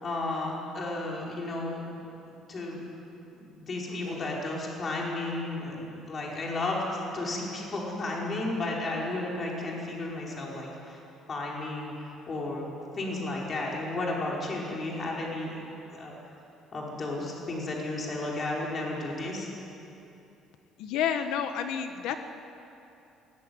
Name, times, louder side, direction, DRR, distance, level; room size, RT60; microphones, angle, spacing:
voice 1, 0.0-2.0 2.5-2.8 3.4-11.0 11.3-16.2 16.7-19.5, left 2 dB, 30° left, -3 dB, 4.9 m, -33 dB
sound 1, 3.8-4.7, left 5 dB, 50° left, 2.6 m, -48 dB
voice 2, 20.8-22.2, left 8 dB, 75° left, 7 dB, 1.3 m, -29 dB
22.0 x 18.5 x 9.6 m, 2.8 s
cardioid pair, 145°, 0 cm